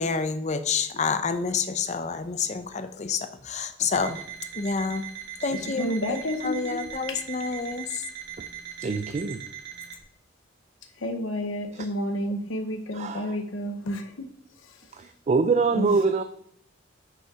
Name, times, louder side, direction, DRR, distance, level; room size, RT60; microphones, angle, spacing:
voice 1, 0.0-4.2 4.6-5.0 5.4-8.0, left 5 dB, 35° left, 0.5 m, -28 dB
Alarm, 3.9-10.0, right 10 dB, 60° right, 1.5 m, -40 dB
voice 2, 5.5-6.8 7.1-7.2 11.0-14.3 15.8-15.9, left 1 dB, 80° left, 0.8 m, -30 dB
voice 3, 8.8-9.4 11.7-11.9 12.9-13.4 14.9-16.2, right 4 dB, 35° right, 0.3 m, -25 dB
6.3 x 5.4 x 4.8 m
head